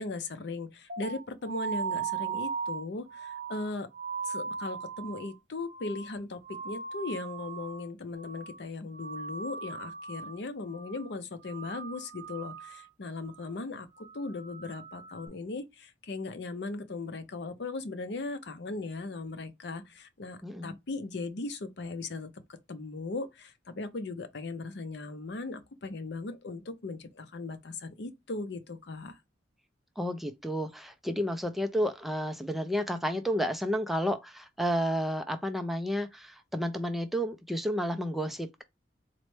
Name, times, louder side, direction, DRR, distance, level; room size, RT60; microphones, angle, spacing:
voice 1, 0.0-3.9 4.3-22.3 22.7-29.2, left 3 dB, 70° left, 0.6 m, -38 dB
sound 1, 0.9-7.9 8.1-8.7 8.9-10.4 10.7-11.1 11.4-12.9 13.2-13.6 13.9-15.3, right 6 dB, 45° right, 0.8 m, -39 dB
voice 2, 20.4-20.8 30.0-38.6, equal, ahead, 0.3 m, -31 dB
4.0 x 2.1 x 3.1 m
head